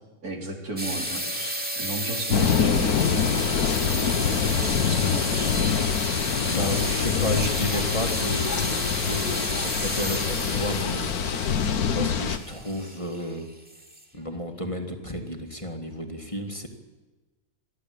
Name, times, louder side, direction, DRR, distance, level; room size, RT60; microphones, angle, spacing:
voice 1, 0.2-3.1 4.6-5.5, right 2 dB, 85° right, 1 dB, 3.8 m, -34 dB
sound 1, 0.8-14.2, equal, 5° right, 2.7 m, -32 dB
sound 2, 2.3-12.4, left 7 dB, 85° left, 1.6 m, -25 dB
voice 2, 6.4-11.6 11.9-13.5 14.1-16.7, equal, 20° left, 4 dB, 2.0 m, -32 dB
27.5 x 11.5 x 8.7 m, 1.2 s
omnidirectional pair, 1.5 m